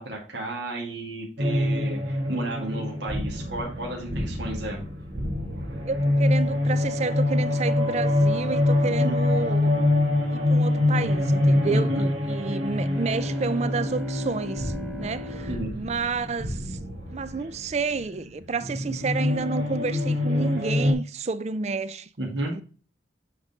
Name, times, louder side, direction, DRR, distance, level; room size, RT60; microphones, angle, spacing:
voice 1, 0.0-4.9 8.8-9.2 11.7-12.1 15.5-15.7 22.2-22.5, right 2 dB, 65° right, 1.8 m, -32 dB
sound 1, 1.4-20.9, left 1 dB, 85° right, 1.6 m, -25 dB
voice 2, 5.9-9.7 10.3-16.8 17.1-22.1 22.5-22.6, right 4 dB, 35° right, 0.4 m, -30 dB
sound 2, 12.6-16.7, left 3 dB, 10° right, 1.5 m, -39 dB
8.4 x 3.8 x 4.0 m
head